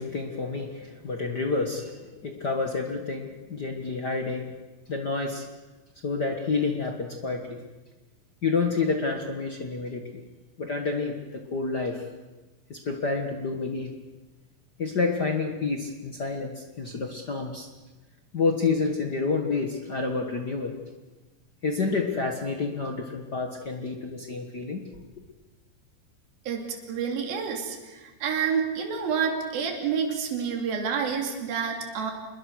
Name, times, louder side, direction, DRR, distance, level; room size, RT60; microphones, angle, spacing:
voice 1, 0.0-4.5 4.9-5.5 6.0-7.6 8.4-10.0 10.6-12.1 12.7-13.9 14.8-17.7 18.3-20.7 21.6-25.0, left 4 dB, 60° left, 3 dB, 1.0 m, -29 dB
voice 2, 26.5-32.1, right 6 dB, 65° right, 2 dB, 4.5 m, -29 dB
27.5 x 21.0 x 6.4 m, 1.2 s
omnidirectional pair, 4.5 m